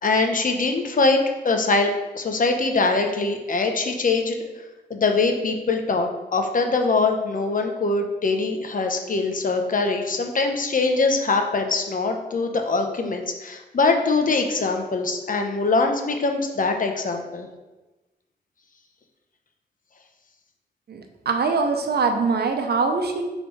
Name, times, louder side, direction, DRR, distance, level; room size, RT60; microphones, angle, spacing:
voice 1, 0.0-4.4 4.9-17.5, left 3 dB, 50° left, 4 dB, 0.9 m, -23 dB
voice 2, 20.9-23.2, right 4 dB, 70° right, 5 dB, 0.8 m, -23 dB
5.1 x 3.4 x 5.4 m, 1.1 s
cardioid pair, 65°, 17 cm